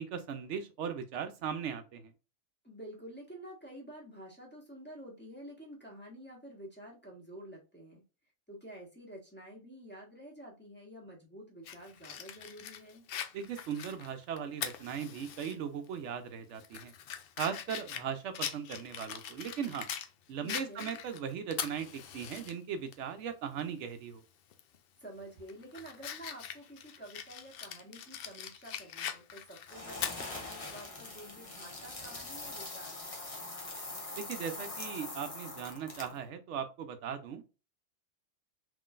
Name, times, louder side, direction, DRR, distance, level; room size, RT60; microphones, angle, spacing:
voice 1, 0.0-2.1 13.3-16.9 17.4-19.9 20.3-24.2 34.2-37.4, right 7 dB, 75° right, 8 dB, 0.9 m, -38 dB
voice 2, 2.6-8.0 8.5-13.0 20.4-20.9 25.0-33.0, right 1 dB, 10° left, -4 dB, 1.3 m, -49 dB
Fire, 11.7-15.5 15.9-16.0 16.5-20.1 20.5-22.5 22.9-23.0 24.5-24.8 25.2-30.8, left 8 dB, 60° left, 0.7 m, -42 dB
sound 1, 29.7-36.2, left 2 dB, 30° left, 0.8 m, -43 dB
3.7 x 3.1 x 2.4 m, 0.31 s
omnidirectional pair, 1.2 m